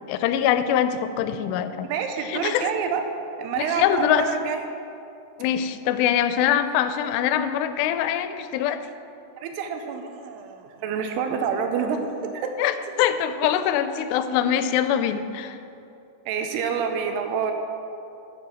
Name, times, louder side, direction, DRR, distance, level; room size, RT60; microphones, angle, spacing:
voice 1, 0.1-1.9 2.3-2.7 3.6-4.3 5.4-8.9 12.6-15.6, left 10 dB, 85° left, 10 dB, 2.6 m, -23 dB
voice 2, 1.9-3.0 3.4-4.7 9.4-12.0 12.3-12.5 16.3-17.5, right 6 dB, 80° right, 5 dB, 2.7 m, -27 dB
9.1 x 7.3 x 6.3 m, 2.7 s
omnidirectional pair, 4.9 m